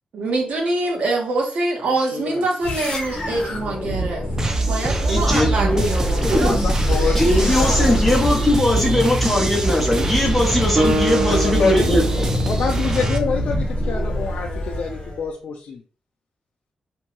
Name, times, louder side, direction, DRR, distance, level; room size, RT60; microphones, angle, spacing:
voice 1, 0.1-4.2 4.6-6.6, right 2 dB, 70° right, 0 dB, 0.9 m, -24 dB
voice 2, 2.1-2.4 6.3-8.0 11.2-11.9 12.5-15.8, left 5 dB, 60° left, 1 dB, 0.4 m, -26 dB
sound 1, 2.6-15.3, left 1 dB, 45° left, 0.7 m, -25 dB
sound 2, 4.4-13.2, right 3 dB, 25° right, 0.3 m, -24 dB
voice 3, 5.1-5.8 6.2-6.6 7.1-12.5, left 1 dB, 10° left, -2 dB, 0.6 m, -20 dB
Acoustic guitar, 10.8-13.5, right 1 dB, 40° right, 1.1 m, -25 dB
2.6 x 2.2 x 3.0 m, 0.40 s
wide cardioid pair, 180°, 2 cm